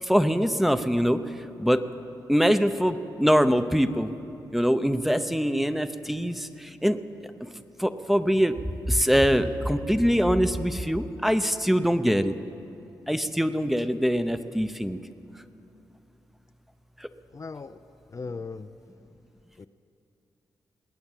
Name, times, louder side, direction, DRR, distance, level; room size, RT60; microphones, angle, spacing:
voice 1, 0.1-1.2 1.6-1.8 2.3-4.1 4.5-6.5 6.8-7.0 7.8-8.5 8.9-12.3 13.1-15.0, equal, ahead, 10 dB, 0.8 m, -23 dB
voice 2, 17.3-17.8 18.1-18.7 19.6-19.7, left 4 dB, 40° left, 9 dB, 0.5 m, -38 dB
20.5 x 8.9 x 7.4 m, 2.9 s
supercardioid pair, 40°, 9 cm